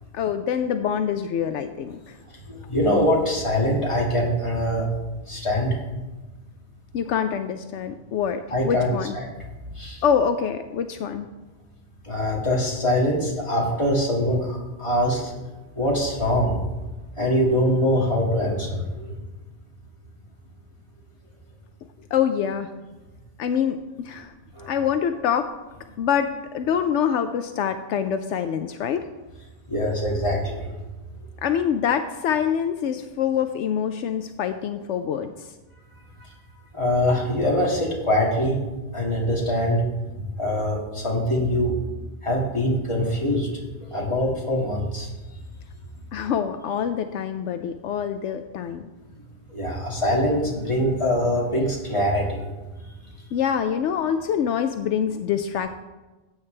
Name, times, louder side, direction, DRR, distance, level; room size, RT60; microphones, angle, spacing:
voice 1, 0.1-2.2 6.9-9.1 10.0-11.3 22.1-22.7 23.4-24.3 24.7-25.5 26.0-29.1 31.4-35.5 46.1-48.8 53.3-55.7, left 8 dB, 80° left, 8 dB, 0.9 m, -25 dB
voice 2, 2.5-4.9 5.3-5.8 8.5-9.3 9.8-10.0 12.0-15.3 15.8-16.6 17.2-19.1 24.6-24.7 29.7-30.7 36.7-38.6 38.9-39.8 40.4-41.8 42.2-43.5 43.8-45.1 49.5-52.4, equal, 25° left, -3 dB, 2.2 m, -23 dB
14.0 x 8.6 x 3.3 m, 1.1 s
omnidirectional pair, 1.2 m